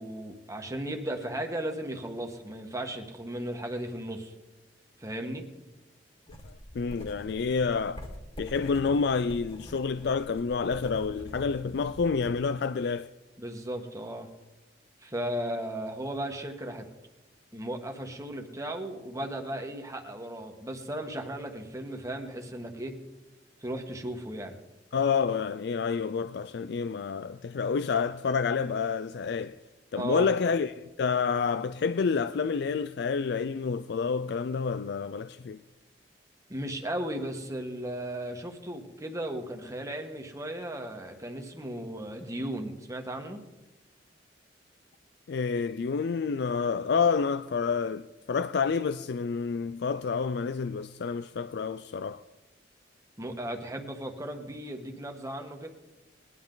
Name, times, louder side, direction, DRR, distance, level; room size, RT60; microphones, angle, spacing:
voice 1, 0.0-4.3 5.0-5.4 13.4-14.3 15.0-16.8 17.5-23.0 23.6-24.6 30.0-30.3 36.5-43.4 53.2-55.7, right 1 dB, 20° right, 1.5 m, -36 dB
sound 1, 6.3-12.3, equal, 30° left, 2.1 m, -45 dB
voice 2, 6.4-8.1 8.4-13.1 24.9-29.6 29.9-35.6 45.3-52.2, left 5 dB, 65° left, 0.4 m, -29 dB
20.5 x 11.0 x 3.9 m
head